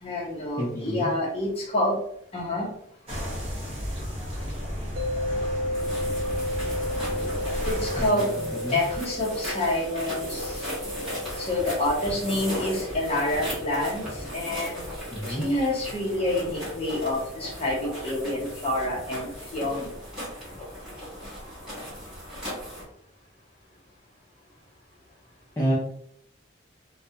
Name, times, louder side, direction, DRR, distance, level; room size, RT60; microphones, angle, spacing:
voice 1, 0.0-2.0 2.3-2.7 7.6-8.3 8.7-10.7 11.4-14.8 15.3-19.9, left 1 dB, 30° left, -4 dB, 0.8 m, -28 dB
voice 2, 0.6-1.1 8.0-8.8 15.1-15.5 25.6-25.8, right 1 dB, 15° left, -7 dB, 0.4 m, -29 dB
sound 1, 3.1-8.1, equal, 30° right, 0.9 m, -33 dB
sound 2, 5.0-18.0, left 1 dB, 50° right, 0.4 m, -35 dB
sound 3, 5.7-22.8, equal, 5° right, 1.0 m, -37 dB
2.2 x 2.1 x 2.7 m, 0.69 s
head